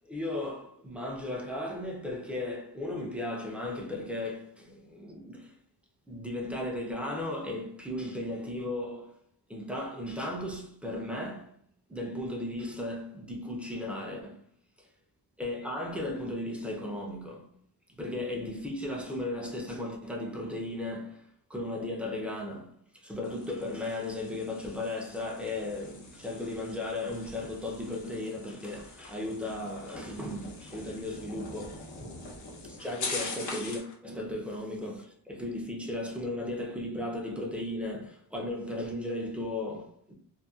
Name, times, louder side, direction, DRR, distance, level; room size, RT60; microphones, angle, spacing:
voice 1, 0.1-5.5 6.1-9.1 9.5-11.5 11.9-14.4 14.8-14.9 15.4-17.5 17.9-21.2 21.5-32.2 32.8-40.1, left 1 dB, 5° right, 0.5 m, -36 dB
sound 1, 23.2-33.9, left 3 dB, 90° left, 0.8 m, -43 dB
2.7 x 2.2 x 2.3 m
wide cardioid pair, 90°, 41 cm